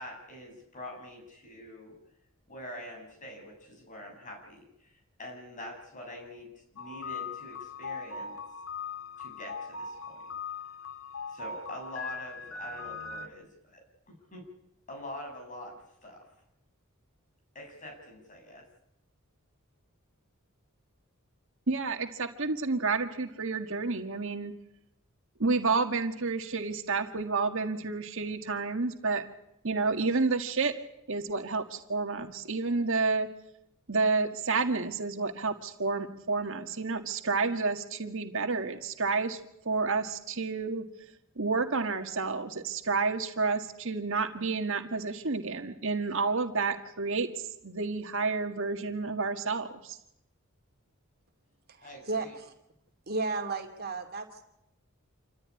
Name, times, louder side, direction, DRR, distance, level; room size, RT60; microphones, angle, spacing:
voice 1, 0.0-2.0 2.5-4.9 5.2-8.4 9.2-10.2 11.3-14.5 14.9-16.3 17.5-18.7 51.8-52.3, left 1 dB, 35° left, 2 dB, 7.5 m, -45 dB
sound 1, 6.8-13.3, left 5 dB, 75° left, 1.8 m, -40 dB
voice 2, 21.7-24.5 25.4-29.2 29.6-30.7 31.1-33.3 33.9-39.4 39.7-40.8 41.4-47.3 47.6-50.0, right 4 dB, 65° right, 6 dB, 1.8 m, -30 dB
voice 3, 51.7-52.5 53.1-54.4, right 3 dB, 50° right, 4 dB, 2.8 m, -34 dB
27.5 x 14.5 x 9.8 m, 0.81 s
head